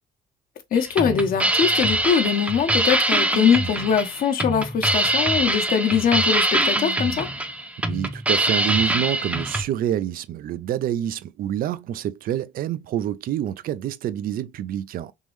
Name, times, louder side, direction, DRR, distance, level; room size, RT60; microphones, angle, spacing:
voice 1, 0.7-7.3, left 7 dB, 55° left, 1.0 m, -22 dB
sound 1, 0.7-9.6, right 1 dB, 10° right, 0.7 m, -23 dB
voice 2, 7.8-15.1, right 11 dB, 60° right, 0.5 m, -27 dB
3.6 x 3.0 x 3.2 m
cardioid pair, 110°, 17 cm